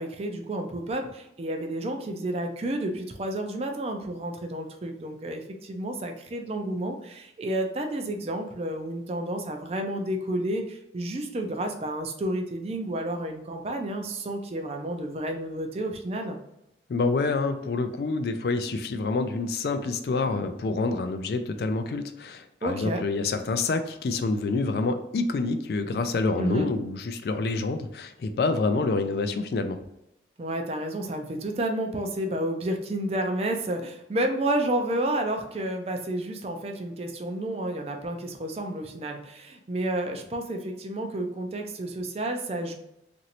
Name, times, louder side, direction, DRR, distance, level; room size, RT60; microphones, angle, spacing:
voice 1, 0.0-16.4 22.6-23.0 26.4-26.7 30.4-42.7, right 1 dB, 35° right, 4 dB, 0.4 m, -30 dB
voice 2, 16.9-29.8, left 3 dB, 60° left, 9 dB, 0.3 m, -27 dB
3.0 x 2.6 x 2.9 m, 0.84 s
head